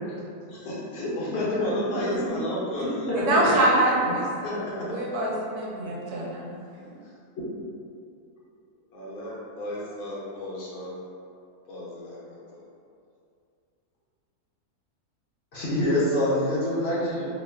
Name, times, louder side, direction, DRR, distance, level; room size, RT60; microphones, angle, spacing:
voice 1, 0.5-3.1 3.5-3.7 4.0-4.9 5.8-6.1 7.0-7.1 8.9-10.9 11.7-12.2 12.5-12.6, left 1 dB, 75° left, -6 dB, 1.2 m, -33 dB
voice 2, 1.3-1.7 3.1-3.7 15.5-17.3, left 1 dB, 55° left, -9 dB, 0.8 m, -26 dB
voice 3, 3.1-4.2 4.9-6.5, right 2 dB, 80° right, -3 dB, 1.1 m, -24 dB
3.0 x 2.1 x 3.2 m, 2.5 s
omnidirectional pair, 1.6 m